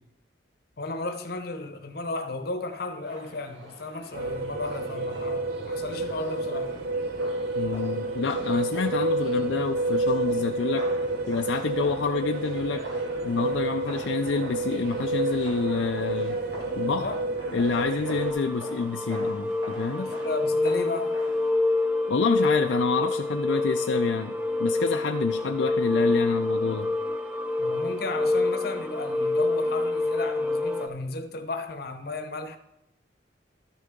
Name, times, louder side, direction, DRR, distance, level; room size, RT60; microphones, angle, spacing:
voice 1, 0.8-6.7 16.9-17.2 20.0-21.2 27.6-32.6, left 2 dB, 50° left, 0.8 m, -34 dB
sound 1, 3.0-21.5, equal, 70° right, 2.4 m, -44 dB
sound 2, 4.1-18.3, right 2 dB, 50° right, 0.8 m, -29 dB
voice 2, 7.5-10.9 11.3-12.9 13.2-16.4 16.8-17.0 17.5-20.1 22.1-26.9, left 4 dB, 75° left, 0.4 m, -28 dB
sound 3, 18.0-30.9, left 2 dB, 5° right, 0.5 m, -27 dB
12.5 x 6.7 x 3.6 m
head